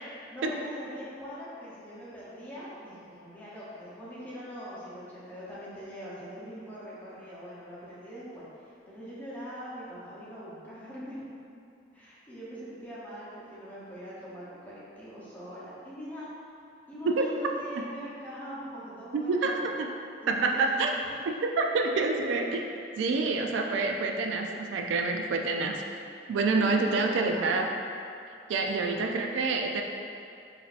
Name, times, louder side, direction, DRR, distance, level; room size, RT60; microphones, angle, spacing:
voice 1, 0.0-11.3 11.9-16.3 16.9-19.7 20.5-20.9 26.5-27.6 28.7-29.1, equal, 10° left, -9 dB, 0.7 m, -42 dB
voice 2, 19.3-19.9 20.3-20.9 21.4-22.7 23.0-25.8 26.3-27.7 28.5-29.8, right 3 dB, 85° right, 3 dB, 0.3 m, -27 dB
5.1 x 2.6 x 2.4 m, 2.5 s
head